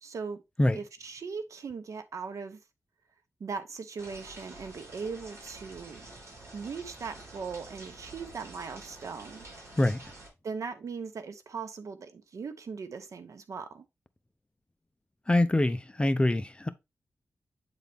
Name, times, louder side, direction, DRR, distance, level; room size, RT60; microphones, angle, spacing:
voice 1, 0.0-0.4 0.7-2.6 3.4-6.0 6.5-9.4 10.4-13.8, right 5 dB, 75° right, 0.9 m, -39 dB
sound 1, 4.0-10.3, right 2 dB, 55° right, 3.5 m, -48 dB
voice 2, 15.3-16.7, left 1 dB, 20° left, 0.6 m, -24 dB
8.2 x 4.0 x 3.4 m
wide cardioid pair, 95°, 5 cm